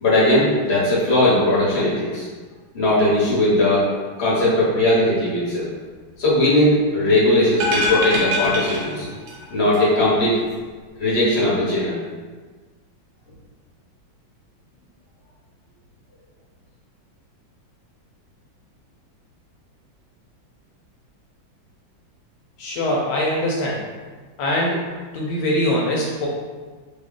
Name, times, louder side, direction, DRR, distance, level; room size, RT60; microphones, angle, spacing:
voice 1, 0.0-2.3 2.7-3.9 4.2-5.7 6.2-9.1 9.5-10.4 11.0-12.0, left 1 dB, 40° left, -7 dB, 1.1 m, -18 dB
sound 1, 7.5-9.5 9.7-9.8, left 1 dB, 70° right, 1.3 m, -23 dB
voice 2, 22.6-23.9 24.4-24.9 25.1-26.3, left 1 dB, 80° left, -3 dB, 1.3 m, -22 dB
3.2 x 2.3 x 3.7 m, 1.4 s
omnidirectional pair, 2.2 m